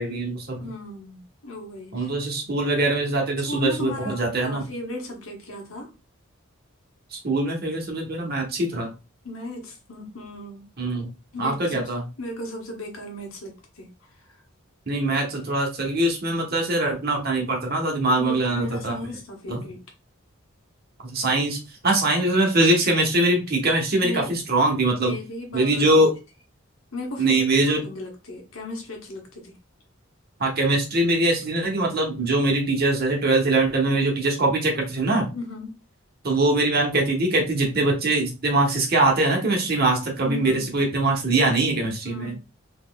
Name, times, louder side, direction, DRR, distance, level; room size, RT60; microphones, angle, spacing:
voice 1, 0.0-0.6 1.9-4.6 7.1-8.9 10.8-11.1 11.4-12.0 14.9-18.9 19.5-19.6 21.1-25.1 25.5-26.1 27.2-27.8 30.4-35.3 36.2-42.3, right 2 dB, 50° right, 1 dB, 1.1 m, -22 dB
voice 2, 0.5-2.1 3.4-5.9 9.2-10.7 11.3-11.8 12.2-14.4 18.1-19.8 24.0-24.3 25.0-26.0 26.9-29.5 35.3-35.8 40.2-40.8 42.0-42.3, left 1 dB, 80° left, 1 dB, 1.2 m, -36 dB
4.0 x 3.0 x 2.3 m, 0.29 s
head